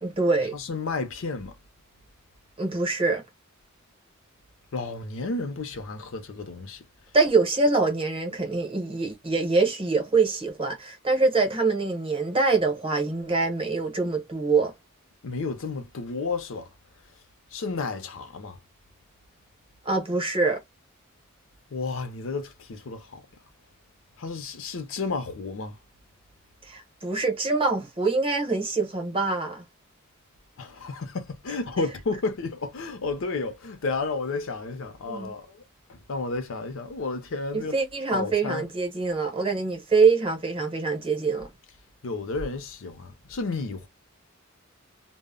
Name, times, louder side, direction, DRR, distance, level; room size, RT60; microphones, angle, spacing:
voice 1, 0.0-0.6 2.6-3.2 7.1-14.7 19.8-20.6 26.7-29.6 35.1-35.4 37.5-41.5, right 3 dB, 25° right, 0.8 m, -24 dB
voice 2, 0.5-1.5 4.7-6.8 15.2-16.7 17.5-18.6 21.7-23.2 24.2-25.8 30.6-35.6 35.9-37.8 38.1-38.7 42.0-43.9, left 3 dB, 65° left, 0.5 m, -32 dB
2.0 x 2.0 x 3.5 m
head